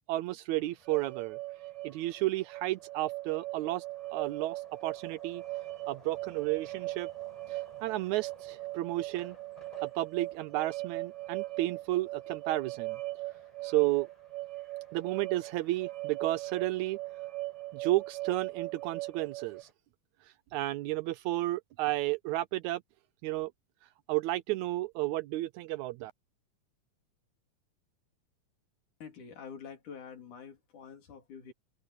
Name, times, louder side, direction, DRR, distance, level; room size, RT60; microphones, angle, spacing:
voice 1, 0.1-1.4 1.8-3.8 4.1-5.4 5.9-7.1 7.5-9.4 9.8-13.0 13.6-14.1 14.9-17.0 17.7-19.7 20.5-22.8 23.2-23.5 24.1-26.1, right 17 dB, 80° right, 1.8 m, -32 dB
sound 1, 0.6-19.7, equal, 10° right, 5.8 m, -60 dB
sound 2, 0.9-19.6, right 19 dB, 60° right, 3.2 m, -40 dB
voice 2, 29.0-31.5, left 6 dB, 75° left, 4.6 m, -47 dB
open air
omnidirectional pair, 3.6 m